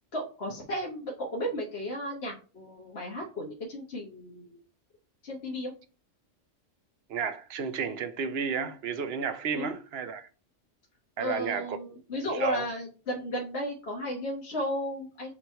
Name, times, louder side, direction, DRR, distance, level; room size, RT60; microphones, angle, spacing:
voice 1, 0.1-4.6 5.2-5.7 9.5-9.7 11.2-15.3, equal, 60° left, 1.5 m, -34 dB
voice 2, 7.1-10.3 11.2-11.8 12.3-12.7, right 5 dB, 60° right, 0.9 m, -32 dB
7.4 x 3.0 x 4.4 m
omnidirectional pair, 1.3 m